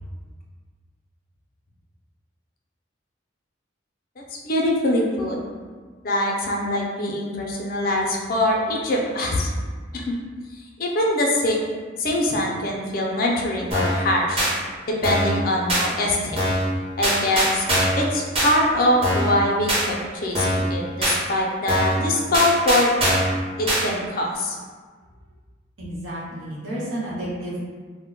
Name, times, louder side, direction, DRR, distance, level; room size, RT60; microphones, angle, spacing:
voice 1, 4.2-5.4 6.0-9.5 9.9-10.2 10.5-11.6 12.0-14.4 14.9-16.4 17.0-17.6 17.9-22.9 23.6-24.6, left 1 dB, 50° left, -1 dB, 0.4 m, -23 dB
sound 1, 13.7-14.0 14.4-14.5 15.0-15.4 15.7-15.9 16.4-16.7 17.0-18.0 18.3-18.5 19.0-19.3 19.7-19.8 20.3-20.7 21.0-21.2 21.7-22.0 22.3-23.3 23.7-23.8, equal, 30° right, 0.7 m, -22 dB
voice 2, 25.8-27.6, right 1 dB, 85° right, -8 dB, 1.0 m, -31 dB
2.1 x 2.1 x 3.7 m, 1.5 s
head